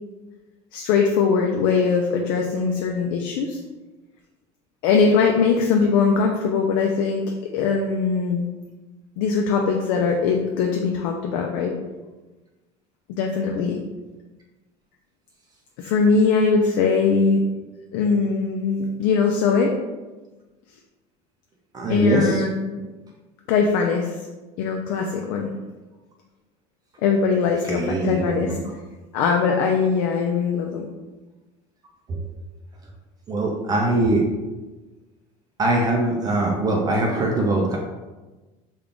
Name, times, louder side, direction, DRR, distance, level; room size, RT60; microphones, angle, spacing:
voice 1, 0.7-3.6 4.8-7.2 7.5-8.5 9.2-11.7 13.1-13.8 15.8-17.4 17.9-19.8 21.9-22.9 23.5-24.2 24.6-25.5 27.0-28.5 29.1-30.9, left 5 dB, 80° left, 1 dB, 0.4 m, -21 dB
voice 2, 21.7-22.5 27.6-28.5 32.1-32.3 33.3-34.3 35.6-37.8, right 2 dB, 25° right, 0 dB, 0.4 m, -22 dB
3.6 x 2.3 x 3.5 m, 1.2 s
cardioid pair, 145°, 15 cm